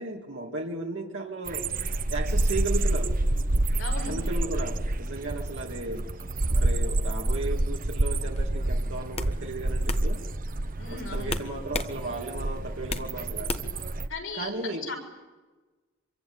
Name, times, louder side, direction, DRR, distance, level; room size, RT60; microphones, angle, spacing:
voice 1, 0.0-1.7 2.1-3.2 4.1-6.1 6.5-10.2 10.9-13.5 14.3-14.9, right 2 dB, 70° right, -1 dB, 2.5 m, -35 dB
sound 1, 1.5-14.1, right 2 dB, 45° right, 1.0 m, -28 dB
voice 2, 3.8-4.2 10.8-11.3 14.1-14.9, left 3 dB, 80° left, 2 dB, 6.7 m, -37 dB
sound 2, 8.4-8.6 9.1-9.3 9.9-10.0 11.3-11.9 12.3-13.1 13.5-13.8, left 3 dB, 30° left, 1.5 m, -32 dB
26.0 x 23.5 x 8.8 m, 1.2 s
head